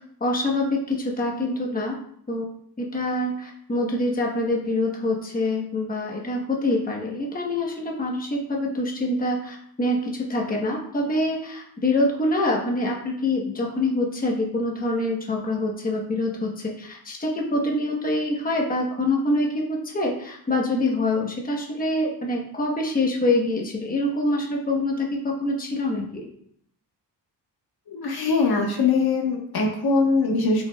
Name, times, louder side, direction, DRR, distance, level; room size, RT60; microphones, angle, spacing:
voice 1, 0.2-2.0 2.3-2.5 2.8-26.3, left 2 dB, 20° left, -1 dB, 1.2 m, -25 dB
voice 2, 27.9-30.7, left 4 dB, 60° left, 1 dB, 1.5 m, -22 dB
8.4 x 5.7 x 2.4 m, 0.66 s
wide cardioid pair, 140°, 41 cm